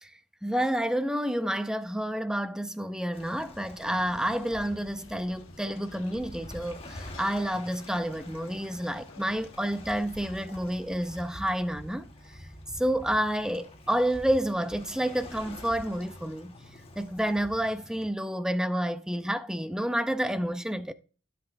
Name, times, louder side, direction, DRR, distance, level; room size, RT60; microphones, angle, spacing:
voice 1, 0.4-12.5 12.7-16.6 17.0-20.9, equal, 5° right, 0.4 m, -29 dB
Waves surf, 3.1-18.1, left 1 dB, 30° left, 1.3 m, -47 dB
sound 1, 3.9-10.3, left 4 dB, 85° left, 0.7 m, -53 dB
14.5 x 5.9 x 2.5 m
head